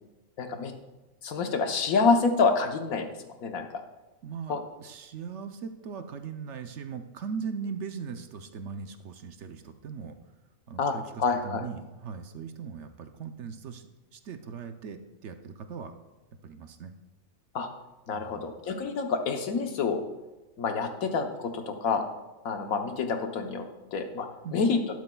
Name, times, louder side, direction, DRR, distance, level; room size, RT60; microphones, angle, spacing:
voice 1, 0.4-0.7 1.2-3.1 3.4-3.8 4.5-4.6 10.8-11.6 17.5-17.7 18.1-20.0 20.6-22.0 22.4-23.6 23.9-24.3 24.5-24.8, left 4 dB, 85° left, 5 dB, 1.4 m, -27 dB
voice 2, 4.2-10.2 10.7-15.9 16.4-16.9 18.1-18.5 24.4-24.6, right 6 dB, 65° right, 7 dB, 0.9 m, -39 dB
12.0 x 11.5 x 2.3 m, 1.1 s
omnidirectional pair, 1.4 m